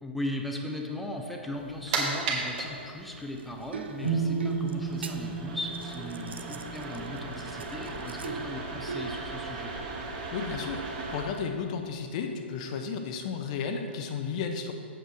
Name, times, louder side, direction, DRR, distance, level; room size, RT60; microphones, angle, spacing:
voice 1, 0.0-9.8, left 1 dB, ahead, 1 dB, 0.7 m, -37 dB
sound 1, 1.5-11.2, right 3 dB, 40° right, 1.6 m, -37 dB
sound 2, 3.4-9.7 11.4-11.5, right 5 dB, 65° right, 0.6 m, -42 dB
sound 3, 4.0-8.0, right 5 dB, 70° left, 1.6 m, -33 dB
voice 2, 10.3-14.7, left 6 dB, 40° left, 5 dB, 0.7 m, -33 dB
7.9 x 7.5 x 4.7 m, 2.3 s
figure-of-eight pair, 110°, 6 cm